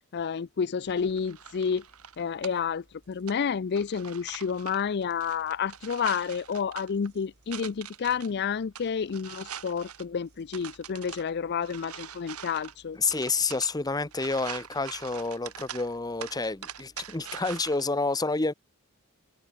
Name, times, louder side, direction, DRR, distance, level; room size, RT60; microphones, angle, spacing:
voice 1, 0.1-1.8 2.2-13.0, left 6 dB, 50° left, 0.4 m, -30 dB
sound 1, 0.8-17.8, right 8 dB, 80° right, 2.7 m, -45 dB
voice 2, 13.0-18.5, left 3 dB, 15° left, 0.9 m, -29 dB
head